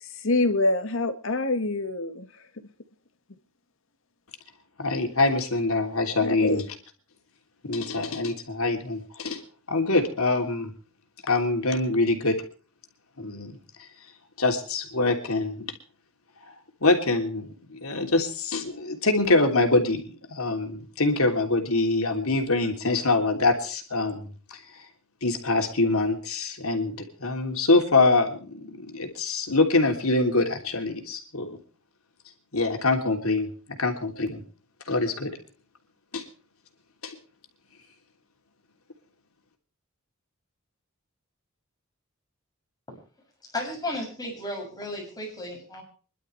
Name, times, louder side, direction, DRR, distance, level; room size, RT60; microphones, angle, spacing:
voice 1, 0.0-2.3 2.6-2.7 6.2-6.6, left 2 dB, 65° left, 1.8 m, -26 dB
voice 2, 4.8-6.6 7.6-9.4 9.7-10.7 11.3-12.4 13.2-13.9 14.4-15.7 16.8-24.8 25.2-31.6 32.5-33.5 33.8-34.4 34.9-35.4 36.1-36.2 37.0-37.2, left 3 dB, 80° left, 3.2 m, -24 dB
voice 3, 43.5-45.8, left 1 dB, 20° left, 7.3 m, -34 dB
26.0 x 12.0 x 3.3 m
head